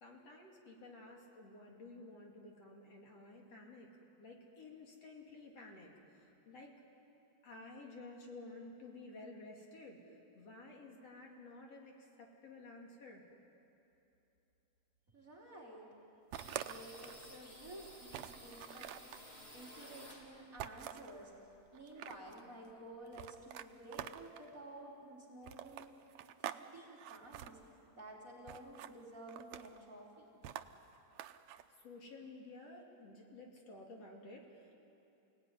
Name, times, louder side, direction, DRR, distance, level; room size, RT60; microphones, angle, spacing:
voice 1, 0.0-3.9 4.2-6.7 7.4-13.2 31.8-34.7, left 2 dB, 60° left, 0 dB, 3.7 m, -53 dB
voice 2, 15.1-15.9 16.5-18.9 19.5-21.3 21.7-25.9 26.4-27.6 27.9-30.4, right 1 dB, 25° right, -4 dB, 4.0 m, -52 dB
sound 1, 16.3-20.7 21.0-22.4 22.7-22.8 23.0-23.8, equal, 20° left, 3.5 m, -55 dB
sound 2, 16.3-17.3 17.7-17.8 18.1-19.2 20.6-21.1 21.7-22.4 23.1-24.5 25.4-26.6 26.9-27.5 28.5-28.9 29.3-29.8 30.4-31.6, right 12 dB, 80° right, 2.0 m, -46 dB
29.0 x 18.0 x 9.8 m, 2.9 s
omnidirectional pair, 3.3 m